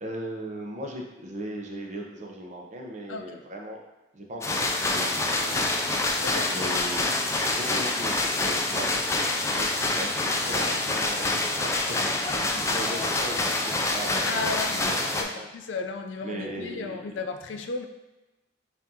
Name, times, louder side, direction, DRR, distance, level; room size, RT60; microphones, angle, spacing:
voice 1, 0.0-3.8 4.1-5.8 6.5-9.1 9.6-12.1 12.4-15.5 16.2-17.0, right 1 dB, 40° right, 1 dB, 0.6 m, -38 dB
sound 1, 4.4-15.2, left 2 dB, 15° left, 0.3 m, -26 dB
voice 2, 6.2-6.6 14.2-17.9, left 4 dB, 90° left, 5 dB, 0.4 m, -34 dB
5.7 x 2.6 x 2.8 m, 1.1 s
head